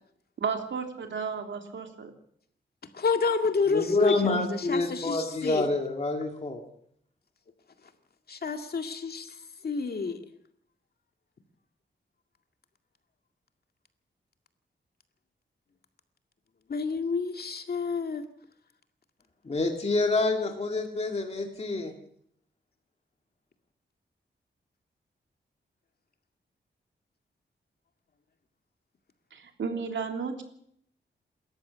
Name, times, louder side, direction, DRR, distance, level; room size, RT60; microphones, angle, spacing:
voice 1, 0.4-2.1 29.3-30.4, right 5 dB, 80° right, 4 dB, 3.2 m, -33 dB
voice 2, 2.9-5.7 8.3-9.3 9.6-10.2 16.7-18.2, left 4 dB, 55° left, 6 dB, 2.2 m, -29 dB
voice 3, 3.7-6.6 19.4-21.9, left 2 dB, 35° left, 3 dB, 2.2 m, -27 dB
27.5 x 14.0 x 6.9 m, 0.68 s
wide cardioid pair, 100°, 19 cm